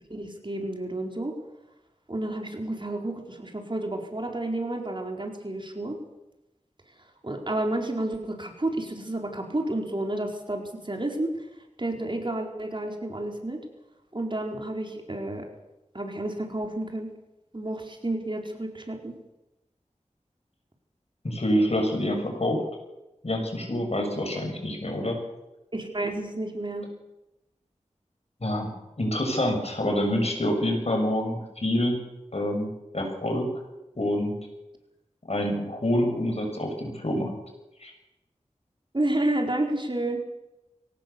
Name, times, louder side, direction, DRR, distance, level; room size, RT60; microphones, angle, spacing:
voice 1, 0.1-1.4 2.1-6.0 7.2-11.5 11.8-13.6 14.1-15.5 15.9-17.1 17.5-19.2 24.4-24.5 25.7-26.9 38.9-40.2, right 1 dB, 40° right, 2 dB, 4.6 m, -30 dB
voice 2, 21.2-22.6 23.2-25.2 28.4-28.7 29.0-32.0 32.3-33.5 33.9-34.4 35.2-37.3 37.8-37.9, left 1 dB, 55° left, 3 dB, 6.6 m, -26 dB
23.5 x 18.0 x 7.1 m, 0.97 s
wide cardioid pair, 45°, 13 cm